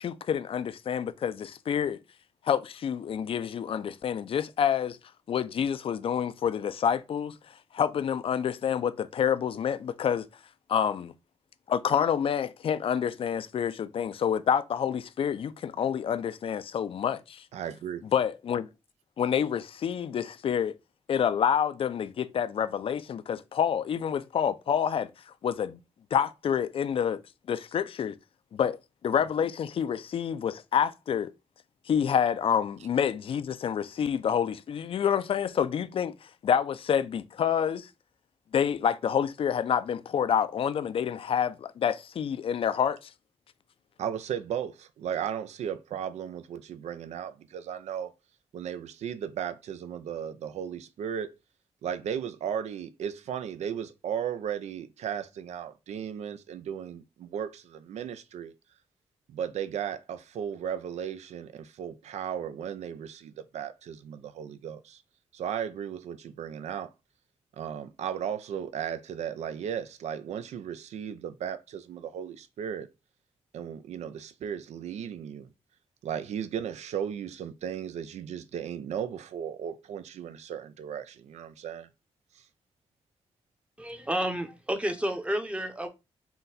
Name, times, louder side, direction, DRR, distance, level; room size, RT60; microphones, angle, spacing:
voice 1, 0.0-2.0 2.4-5.0 5.3-7.3 7.7-10.3 10.7-11.1 11.7-17.4 18.1-18.7 19.2-20.7 21.1-25.1 25.4-25.8 26.1-27.2 27.5-28.2 28.5-31.3 31.9-36.1 36.4-37.9 38.5-43.1, left 8 dB, 55° left, 0.4 m, -28 dB
voice 2, 17.5-18.0 44.0-48.1 48.5-51.3 51.8-58.5 59.3-65.0 65.3-66.9 67.6-72.9 73.5-75.5 76.0-81.9, right 8 dB, 90° right, 0.4 m, -35 dB
voice 3, 83.8-85.9, equal, 10° right, 0.7 m, -30 dB
3.9 x 2.2 x 4.0 m
cardioid pair, 100°, 11 cm